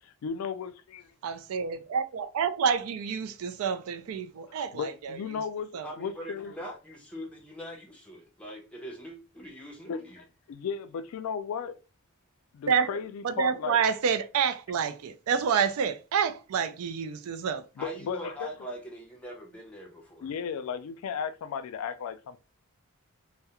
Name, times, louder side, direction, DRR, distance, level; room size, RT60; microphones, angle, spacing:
voice 1, 0.0-1.1 4.5-6.5 9.9-10.0 10.5-11.8 12.5-13.8 17.8-18.5 20.2-22.4, left 7 dB, 70° left, 0.3 m, -35 dB
voice 2, 1.2-5.2 5.7-5.9 12.7-12.9 13.2-17.6, right 6 dB, 70° right, 0.3 m, -28 dB
voice 3, 5.8-10.2 17.8-20.3, equal, 5° left, 0.5 m, -42 dB
2.3 x 2.0 x 2.8 m
head